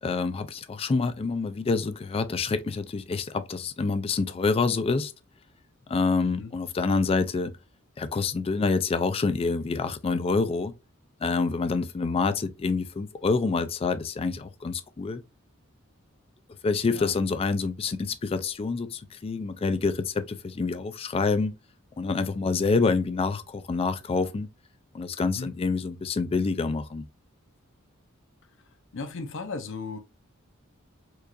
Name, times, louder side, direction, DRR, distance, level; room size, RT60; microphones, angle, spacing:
voice 1, 0.0-5.1 5.9-7.6 8.0-10.7 11.2-15.2 16.6-21.5 22.0-24.5 24.9-27.1, left 4 dB, 30° left, 0.3 m, -27 dB
voice 2, 28.9-30.0, left 4 dB, 65° left, 0.7 m, -36 dB
4.5 x 2.4 x 2.5 m
head